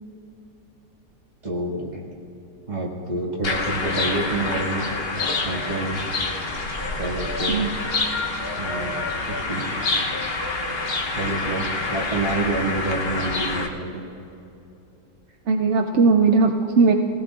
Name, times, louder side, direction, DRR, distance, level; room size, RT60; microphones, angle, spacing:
voice 1, 1.4-2.1 2.7-4.9 5.1-6.0 6.9-7.7 8.6-9.0 9.2-9.7 11.1-14.0, right 2 dB, 25° right, -4 dB, 2.1 m, -28 dB
sound 1, 3.4-13.7, left 3 dB, 45° left, 1.0 m, -27 dB
voice 2, 15.5-16.9, right 4 dB, 70° right, 3 dB, 0.7 m, -18 dB
20.5 x 17.0 x 2.4 m, 2.8 s
omnidirectional pair, 1.8 m